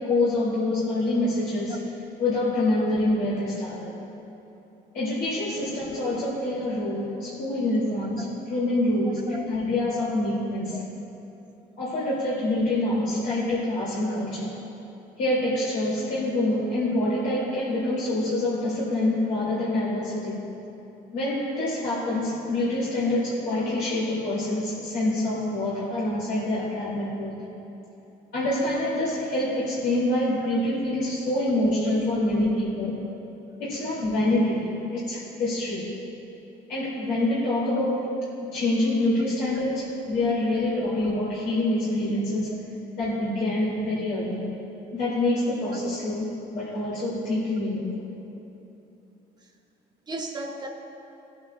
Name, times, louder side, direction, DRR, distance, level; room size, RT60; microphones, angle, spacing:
voice 1, 0.0-1.8 2.2-3.9 4.9-10.8 11.8-14.6 15.2-20.4 21.1-27.4 28.3-33.0 33.6-35.9 36.7-38.1 38.5-42.6 43.0-44.5 44.9-48.0, left 1 dB, 85° left, -9 dB, 2.5 m, -26 dB
voice 2, 50.1-50.7, right 2 dB, 25° right, 2 dB, 1.2 m, -35 dB
18.5 x 8.5 x 2.3 m, 2.9 s
cardioid pair, 110°, 17 cm